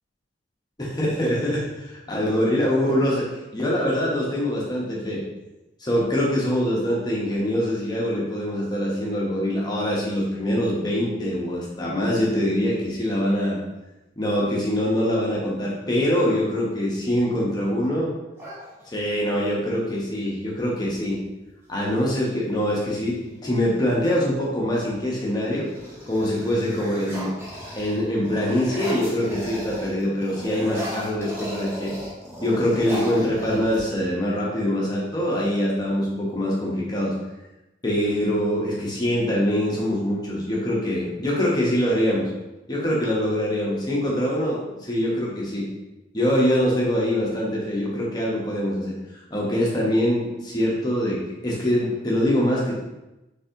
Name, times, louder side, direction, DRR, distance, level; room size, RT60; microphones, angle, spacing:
voice 1, 0.8-3.3 3.5-5.2 5.8-13.6 14.2-18.1 18.9-21.2 21.7-25.7 26.1-27.3 27.7-31.9 32.4-37.1 37.8-42.3 42.7-45.7 46.1-48.9 49.3-52.7, equal, 20° left, -4 dB, 0.9 m, -24 dB
sound 1, 18.4-19.3 21.0-21.1 21.4-21.9 22.5-24.0 24.6-25.0 25.4-29.9 30.2-34.1, equal, 15° right, 0.8 m, -37 dB
3.9 x 3.5 x 2.8 m, 0.98 s
head